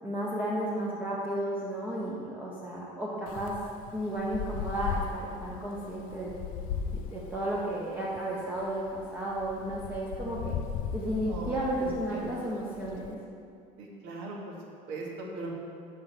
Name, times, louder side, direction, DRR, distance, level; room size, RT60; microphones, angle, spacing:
voice 1, 0.0-3.5 3.9-6.3 6.9-10.5 10.9-13.2, right 1 dB, 10° right, -6 dB, 0.7 m, -33 dB
Wind, 3.3-13.1, left 7 dB, 75° left, 0.4 m, -38 dB
voice 2, 11.3-12.5 13.8-14.5 14.9-15.5, right 2 dB, 80° right, -2 dB, 1.4 m, -40 dB
5.7 x 4.8 x 6.6 m, 2.3 s
cardioid pair, 175°, 14 cm